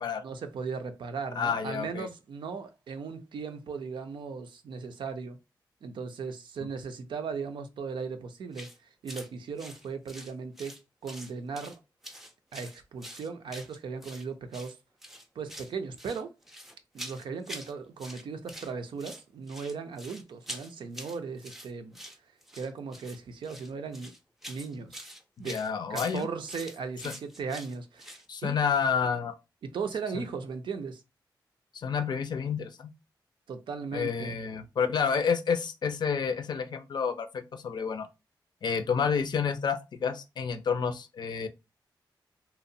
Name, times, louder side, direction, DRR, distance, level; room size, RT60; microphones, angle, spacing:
voice 1, 0.2-5.4 5.8-10.7 11.0-11.8 12.5-14.8 15.4-16.3 16.9-22.0 22.5-24.1 24.5-25.0 25.4-25.6 25.9-28.6 29.6-31.0 33.5-34.4, right 5 dB, 75° right, 0.5 m, -37 dB
voice 2, 1.4-2.1 25.4-26.3 27.0-27.1 28.3-29.3 30.1-30.2 31.7-32.9 33.9-38.1 38.6-41.5, left 6 dB, 60° left, 0.4 m, -29 dB
sound 1, 8.5-8.8 9.1-9.3 9.6-10.8 11.1-11.8 12.0-14.2 14.5-14.7 15.0-15.7 16.0-17.7 18.0-18.7 19.0-28.3, equal, 5° right, 0.5 m, -45 dB
2.8 x 2.0 x 2.6 m
cardioid pair, 60°, 8 cm